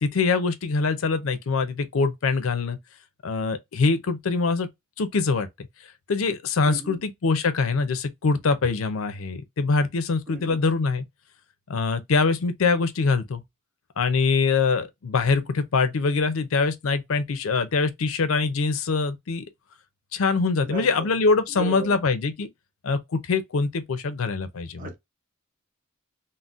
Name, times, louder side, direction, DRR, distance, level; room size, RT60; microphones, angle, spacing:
voice 1, 0.0-2.8 3.2-4.7 5.0-5.5 6.1-11.0 11.7-13.4 14.0-19.4 20.1-22.5 22.8-24.9, left 4 dB, 85° left, 0.5 m, -24 dB
voice 2, 6.7-7.0 10.3-10.6 20.6-21.1 21.5-22.0 24.8-24.9, right 3 dB, 40° right, 0.5 m, -36 dB
3.9 x 2.1 x 2.4 m
head